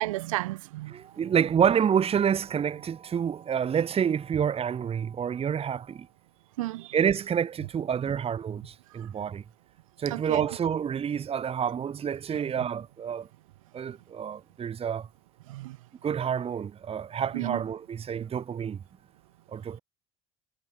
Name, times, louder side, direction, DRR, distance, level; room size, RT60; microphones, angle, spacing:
voice 1, 0.0-1.0 6.6-7.0 8.9-9.1 10.1-10.5 12.3-12.7 15.5-15.8 17.3-17.6, right 18 dB, 80° right, 1.9 m, -33 dB
voice 2, 0.9-6.1 6.9-9.4 10.0-13.3 13.7-15.1 16.0-18.8 19.5-19.8, right 8 dB, 35° right, 1.4 m, -28 dB
hypercardioid pair, 65°, 17 cm